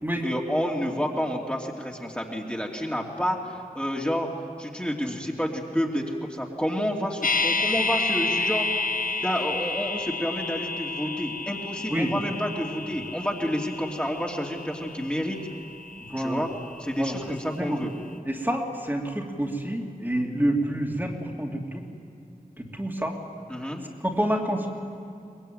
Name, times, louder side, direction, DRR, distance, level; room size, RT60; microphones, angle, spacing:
voice 1, 0.2-4.3 4.6-8.8 9.2-15.4 16.2-16.5 16.8-17.9 23.5-23.8, equal, 10° left, -1 dB, 2.8 m, -29 dB
sound 1, 7.2-17.3 17.6-17.7, left 3 dB, 65° left, 1.2 m, -30 dB
voice 2, 16.1-16.4 17.0-17.8 18.3-21.8 22.6-23.2 24.0-24.7, right 1 dB, 15° right, 0 dB, 2.9 m, -28 dB
23.5 x 20.5 x 9.2 m, 2.6 s
wide cardioid pair, 50°, 15 cm